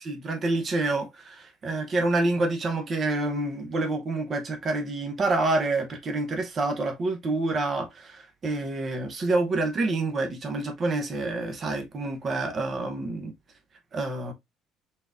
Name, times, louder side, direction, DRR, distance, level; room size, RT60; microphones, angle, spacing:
voice 1, 0.0-13.3 13.9-14.3, right 2 dB, 30° right, 0.8 m, -27 dB
4.3 x 3.5 x 2.5 m
cardioid pair, 165°, 0 cm